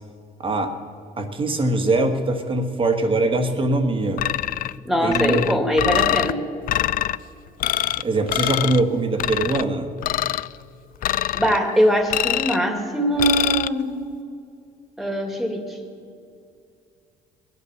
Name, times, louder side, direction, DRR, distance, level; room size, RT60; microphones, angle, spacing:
voice 1, 0.4-0.8 1.2-4.2 5.0-5.4 8.0-9.9, right 2 dB, 30° right, 6 dB, 1.5 m, -22 dB
sound 1, 4.2-4.8 5.1-6.3 6.7-7.2 7.6-8.0 8.3-8.8 9.2-9.6 10.0-10.5 11.0-11.6 12.1-12.6 13.2-13.7, left 13 dB, 55° left, 0.4 m, -24 dB
voice 2, 4.8-6.4 11.3-14.0 15.0-15.8, equal, ahead, 4 dB, 2.3 m, -22 dB
21.5 x 8.3 x 7.2 m, 2.4 s
cardioid pair, 110°, 17 cm